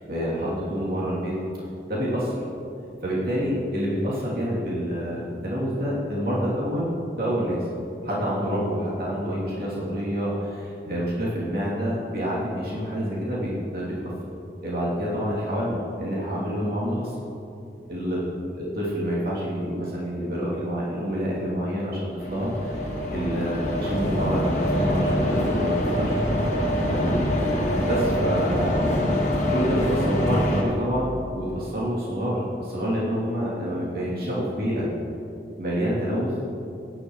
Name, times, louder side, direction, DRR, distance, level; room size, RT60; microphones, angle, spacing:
voice 1, 0.1-1.3 1.8-2.4 3.0-7.6 8.0-14.0 14.6-17.1 17.9-18.2 18.5-22.8 23.1-26.2 26.8-27.6 27.9-29.2 29.5-34.9 35.6-36.3, equal, 55° right, -7 dB, 3.1 m, -27 dB
sound 1, 22.2-30.6, equal, 45° left, 1.8 m, -24 dB
15.5 x 11.0 x 3.2 m, 2.6 s
head